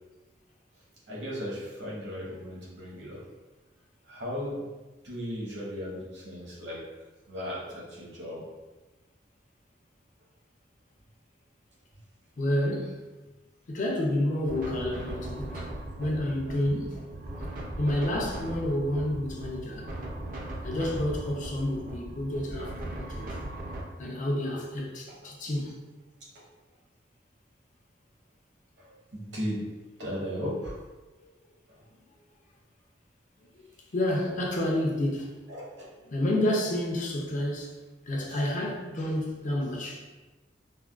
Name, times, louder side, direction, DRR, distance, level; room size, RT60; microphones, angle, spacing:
voice 1, 1.1-3.2 4.1-4.7 5.0-6.8 7.3-8.5 28.8-29.6 30.0-30.8 31.7-31.8 35.5-35.9 38.3-38.4, equal, 75° right, -6 dB, 1.1 m, -36 dB
voice 2, 12.4-13.0 13.7-15.5 16.0-17.1 17.8-19.9 20.6-23.4 24.0-25.8 33.9-35.3 36.1-37.8 38.1-40.0, left 1 dB, 45° left, -1 dB, 0.5 m, -29 dB
sound 1, 14.4-23.8, right 1 dB, 50° right, 0.5 m, -38 dB
3.4 x 2.1 x 2.3 m, 1.2 s
head